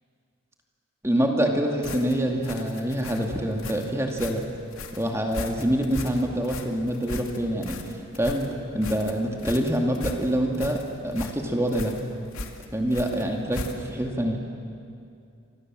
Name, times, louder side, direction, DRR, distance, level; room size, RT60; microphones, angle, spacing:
voice 1, 1.0-4.4 5.0-7.8 8.1-8.5 8.7-12.0 12.7-14.4, equal, 15° right, 1 dB, 2.4 m, -26 dB
sound 1, 1.8-14.1, left 2 dB, 85° left, 2.4 m, -38 dB
29.0 x 25.5 x 7.7 m, 2.5 s
head